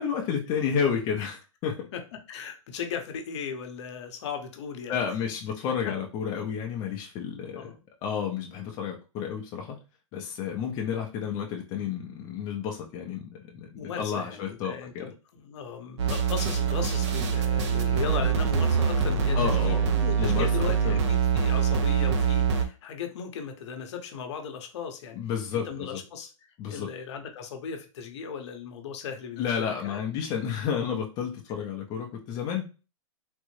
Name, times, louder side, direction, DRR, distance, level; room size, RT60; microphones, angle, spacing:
voice 1, 0.0-1.8 4.9-7.7 8.0-9.8 10.1-15.1 19.3-19.9 20.2-21.0 25.1-26.0 26.6-26.9 29.4-32.6, left 7 dB, 25° left, 0 dB, 0.4 m, -31 dB
voice 2, 1.9-5.0 5.8-5.9 7.5-7.8 13.7-25.2 25.5-26.3 26.6-30.0, left 7 dB, 55° left, 5 dB, 0.7 m, -37 dB
sound 1, 16.0-22.6, right 6 dB, 60° right, 0.6 m, -24 dB
3.6 x 2.0 x 3.0 m, 0.32 s
hypercardioid pair, 145°, 17 cm